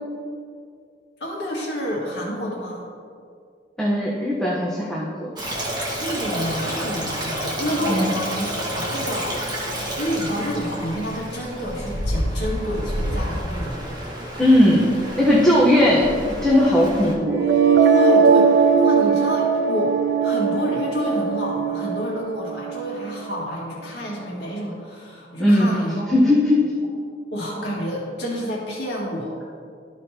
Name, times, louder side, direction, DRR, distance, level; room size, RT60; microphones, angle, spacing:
voice 1, 1.2-2.8 6.0-9.3 10.0-13.8 17.8-26.1 27.3-29.3, equal, 65° left, -4 dB, 1.9 m, -28 dB
voice 2, 3.8-5.3 7.9-8.1 14.4-14.8 15.2-16.1 16.4-17.4 25.4-25.7 26.1-26.6, left 1 dB, 5° left, -6 dB, 0.9 m, -18 dB
Stream, 5.4-17.1, equal, 25° right, 1.5 m, -29 dB
sound 1, 17.2-23.2, right 5 dB, 75° right, 0.5 m, -19 dB
13.0 x 5.1 x 2.8 m, 2.2 s
head